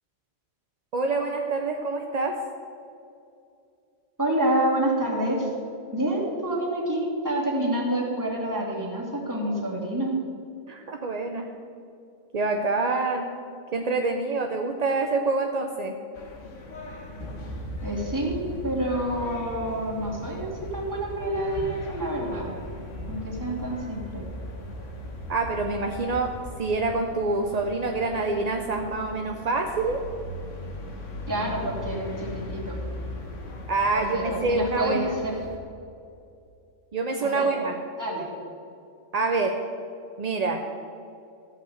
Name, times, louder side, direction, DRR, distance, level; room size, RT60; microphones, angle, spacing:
voice 1, 0.9-2.4 10.7-11.5 12.3-13.3 13.7-15.9 25.3-26.3 26.6-30.0 33.7-35.1 36.9-37.7 39.1-39.6 40.2-40.6, right 3 dB, 45° right, 3 dB, 0.6 m, -26 dB
voice 2, 4.2-5.5 5.9-10.1 17.8-22.5 23.1-24.2 31.3-32.8 33.9-35.3 37.2-37.5 38.0-38.3, right 1 dB, 15° right, -5 dB, 2.7 m, -28 dB
sound 1, 16.1-35.6, left 2 dB, 65° left, 1.6 m, -40 dB
sound 2, 17.2-26.8, right 1 dB, 80° right, 1.9 m, -40 dB
14.5 x 5.7 x 7.9 m, 2.6 s
omnidirectional pair, 1.4 m